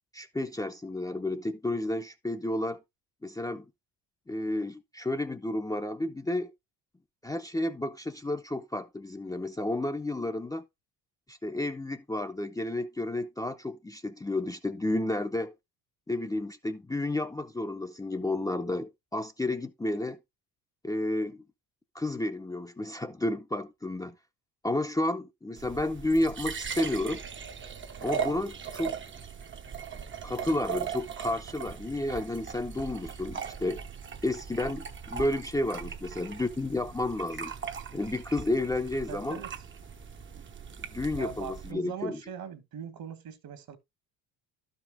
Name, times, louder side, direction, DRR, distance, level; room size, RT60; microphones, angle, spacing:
voice 1, 0.1-2.8 3.2-3.7 4.3-6.5 7.2-10.6 11.3-15.5 16.1-20.2 20.8-21.4 21.9-24.2 24.6-27.2 28.0-28.9 30.2-33.8 34.2-37.5 37.9-39.4 40.8-42.2, left 1 dB, 10° left, 0.7 m, -31 dB
sound 1, 25.6-41.7, right 7 dB, 30° right, 0.8 m, -39 dB
voice 2, 39.1-39.5 41.2-43.8, right 8 dB, 55° right, 1.7 m, -41 dB
12.0 x 5.2 x 3.5 m
cardioid pair, 105°, 42 cm